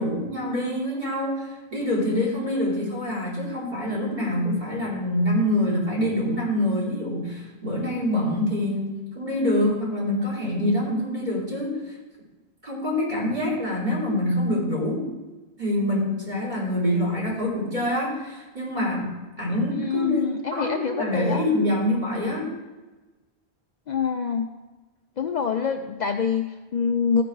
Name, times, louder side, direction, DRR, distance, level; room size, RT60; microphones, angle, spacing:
voice 1, 0.0-11.9 12.6-15.0 15.6-22.5, left 1 dB, 45° right, -5 dB, 3.6 m, -25 dB
voice 2, 19.8-21.5 23.9-24.5 25.2-27.2, left 6 dB, 55° left, 5 dB, 0.6 m, -26 dB
14.5 x 5.1 x 4.6 m, 1.2 s
omnidirectional pair, 1.1 m